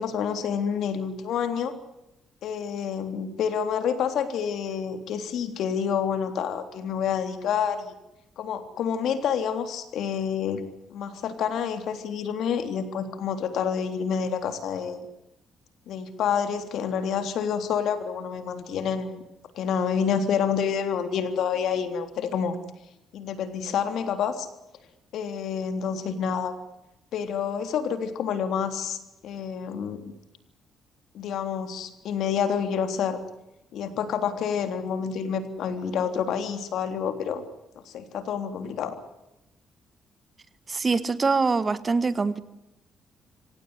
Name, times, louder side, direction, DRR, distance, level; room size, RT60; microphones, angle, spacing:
voice 1, 0.0-1.7 2.4-7.9 8.4-10.6 10.9-15.1 15.9-19.2 19.5-22.6 23.1-24.5 25.1-26.5 27.1-30.1 31.1-33.2 33.7-37.4 37.9-39.0, left 7 dB, 75° left, 9 dB, 3.5 m, -28 dB
voice 2, 40.7-42.4, right 4 dB, 30° right, 14 dB, 1.7 m, -24 dB
25.5 x 17.5 x 9.8 m, 0.93 s
cardioid pair, 90°, 0 cm